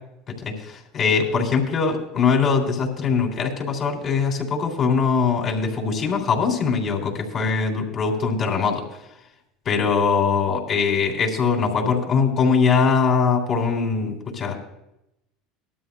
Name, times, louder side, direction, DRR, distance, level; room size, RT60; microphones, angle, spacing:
voice 1, 0.4-8.8 9.7-14.5, left 5 dB, 45° left, 1 dB, 3.6 m, -22 dB
19.5 x 12.5 x 2.4 m, 0.86 s
hypercardioid pair, 80°, 0 cm